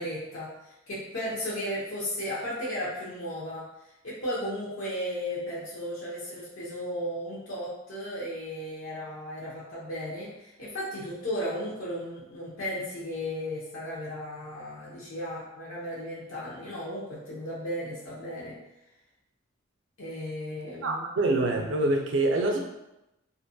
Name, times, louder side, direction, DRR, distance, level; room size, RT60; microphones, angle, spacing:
voice 1, 0.0-3.6 4.0-18.5 20.0-21.0, equal, 85° left, -7 dB, 0.7 m, -35 dB
voice 2, 20.8-22.6, right 2 dB, 65° right, 2 dB, 0.4 m, -25 dB
2.5 x 2.2 x 2.6 m, 0.90 s
head